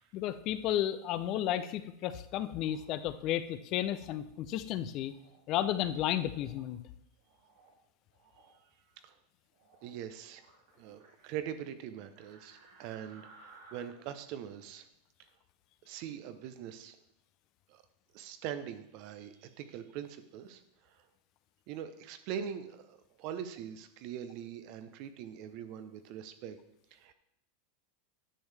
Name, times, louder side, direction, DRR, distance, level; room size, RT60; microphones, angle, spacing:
voice 1, 0.1-5.1 5.5-6.8, left 12 dB, 45° left, 13 dB, 0.5 m, -33 dB
sound 1, 2.5-3.1 3.8-4.1 4.9-5.4 6.3-6.7 7.2-7.8 8.1-8.5 9.5-9.9 10.3-11.3 12.2-13.8, right 3 dB, 80° right, 2.4 m, -59 dB
voice 2, 9.8-10.4 10.8-14.9 15.9-17.0 17.7-17.8 18.1-21.0 21.7-26.6 26.9-27.1, right 9 dB, 55° right, 10 dB, 0.7 m, -42 dB
10.0 x 6.3 x 3.4 m, 0.77 s
supercardioid pair, 130°, 0 cm